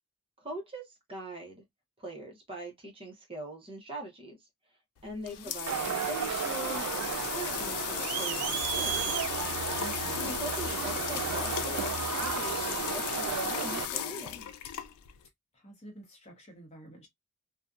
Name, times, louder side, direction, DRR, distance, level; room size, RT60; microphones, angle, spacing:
voice 1, 0.4-1.6 2.0-4.4 5.0-9.1 10.1-14.5, right 1 dB, 25° right, 0.7 m, -42 dB
sound 1, 5.0-15.3, left 10 dB, 80° left, 0.3 m, -36 dB
voice 2, 5.4-6.0 9.8-10.4 15.5-17.1, right 1 dB, 30° left, 0.9 m, -49 dB
Crowd, 5.7-13.9, right 8 dB, 85° right, 0.4 m, -33 dB
2.6 x 2.1 x 2.3 m
head